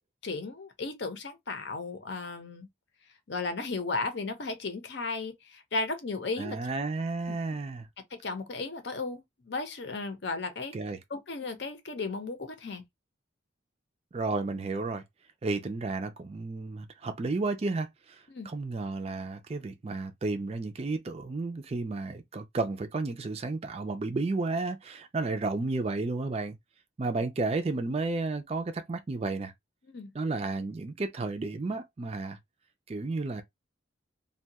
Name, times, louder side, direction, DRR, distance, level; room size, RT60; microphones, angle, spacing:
voice 1, 0.2-2.7 3.3-6.6 8.1-10.7 11.1-12.8 18.3-18.5 29.9-30.1, left 3 dB, 60° left, 0.7 m, -35 dB
voice 2, 6.4-7.9 10.7-11.0 14.1-15.0 15.4-26.6 27.0-29.5 30.1-32.4 32.9-33.4, right 3 dB, 30° right, 0.4 m, -32 dB
2.6 x 2.2 x 2.7 m
head